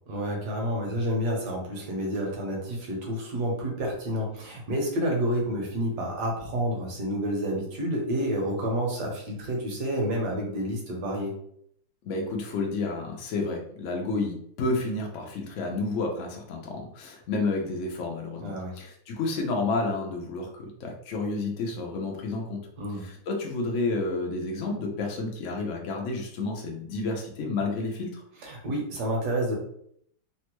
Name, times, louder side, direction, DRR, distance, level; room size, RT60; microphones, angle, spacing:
voice 1, 0.1-11.4 18.4-18.7 22.8-23.0 28.4-29.5, equal, 65° right, -1 dB, 1.4 m, -29 dB
voice 2, 12.1-22.6 23.0-28.2, left 3 dB, 85° left, 1 dB, 0.6 m, -30 dB
3.4 x 2.2 x 2.9 m, 0.68 s
omnidirectional pair, 2.1 m